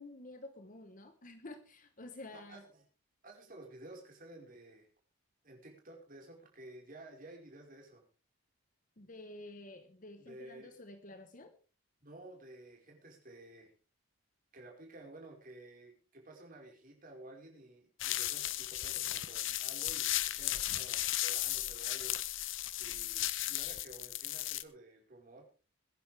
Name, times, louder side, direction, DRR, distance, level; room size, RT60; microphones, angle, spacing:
voice 1, 0.0-2.6 9.0-11.5, left 2 dB, 40° left, 8 dB, 1.2 m, -50 dB
voice 2, 2.3-2.8 3.2-4.9 5.4-8.0 10.2-10.8 12.0-13.7 14.5-22.2 22.5-25.4, right 2 dB, 40° right, 0 dB, 4.9 m, -53 dB
sound 1, 18.0-24.6, left 14 dB, 60° left, 0.8 m, -35 dB
21.5 x 10.5 x 3.5 m, 0.34 s
head